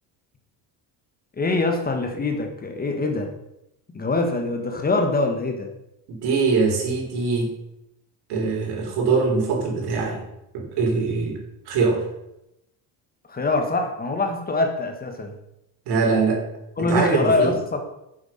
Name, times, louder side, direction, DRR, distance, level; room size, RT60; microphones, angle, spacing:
voice 1, 1.4-3.3 3.9-5.7 13.3-15.3 16.8-17.8, left 3 dB, 20° left, 4 dB, 1.4 m, -24 dB
voice 2, 6.1-7.5 8.3-10.2 10.5-11.4 11.7-12.0 15.9-16.4 16.8-17.5, right 4 dB, 65° right, 2 dB, 3.6 m, -22 dB
11.0 x 7.2 x 5.7 m, 0.84 s
cardioid pair, 145°, 42 cm